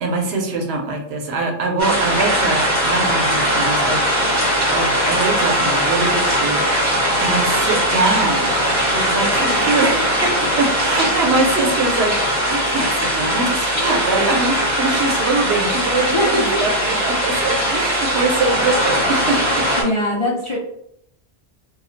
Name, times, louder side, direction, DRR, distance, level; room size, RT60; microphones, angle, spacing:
voice 1, 0.0-4.0 4.7-6.6 7.2-8.5 8.9-19.6, right 3 dB, 90° right, 2 dB, 0.9 m, -23 dB
sound 1, 1.8-19.8, equal, 45° right, 1.2 m, -19 dB
voice 2, 16.0-16.7 19.8-20.6, left 1 dB, 45° left, -3 dB, 0.4 m, -21 dB
2.3 x 2.1 x 3.8 m, 0.73 s
omnidirectional pair, 1.0 m